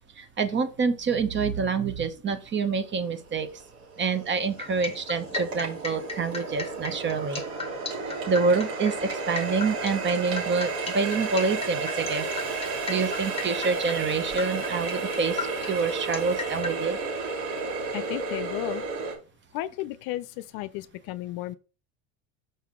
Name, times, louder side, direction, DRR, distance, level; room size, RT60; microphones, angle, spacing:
voice 1, 0.2-3.5 4.0-7.4 8.3-12.3 12.9-17.0, right 4 dB, 30° right, 0.9 m, -27 dB
Water tap faucet, 2.7-2.8 3.3-19.2, right 3 dB, 60° right, 3.4 m, -32 dB
sound 1, 4.6-16.8, left 4 dB, 15° left, 1.2 m, -37 dB
voice 2, 17.9-18.8 19.5-21.6, left 16 dB, 60° left, 0.6 m, -34 dB
5.7 x 5.5 x 3.7 m
supercardioid pair, 115°, 40 cm